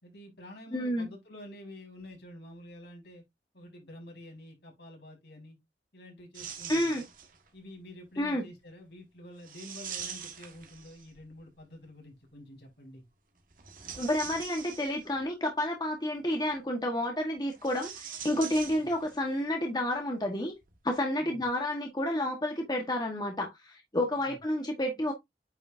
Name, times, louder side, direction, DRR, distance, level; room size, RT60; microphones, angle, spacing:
voice 1, 0.0-3.2 3.5-5.6 5.9-7.1 7.5-13.0 18.8-18.9 21.2-21.4 24.2-24.4, left 1 dB, 70° left, 4.4 m, -49 dB
voice 2, 0.7-1.1 6.7-7.0 8.2-8.4 14.0-20.5 20.8-25.1, left 1 dB, 25° left, 1.3 m, -30 dB
sound 1, 6.3-7.5 9.4-11.3 13.5-15.3 17.5-19.3 19.5-19.6 20.6-20.8, right 8 dB, 50° right, 1.5 m, -43 dB
9.1 x 5.1 x 2.6 m
head